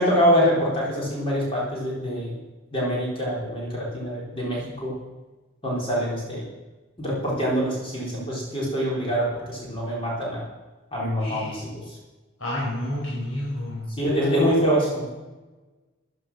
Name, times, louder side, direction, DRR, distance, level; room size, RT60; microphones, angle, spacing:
voice 1, 0.0-2.3 2.7-4.9 5.6-6.4 7.0-10.4 10.9-11.7 14.0-15.1, equal, 25° left, -4 dB, 4.1 m, -24 dB
voice 2, 11.2-11.6 12.4-13.9, left 1 dB, 85° left, -6 dB, 5.6 m, -30 dB
14.5 x 11.5 x 6.2 m, 1.2 s
head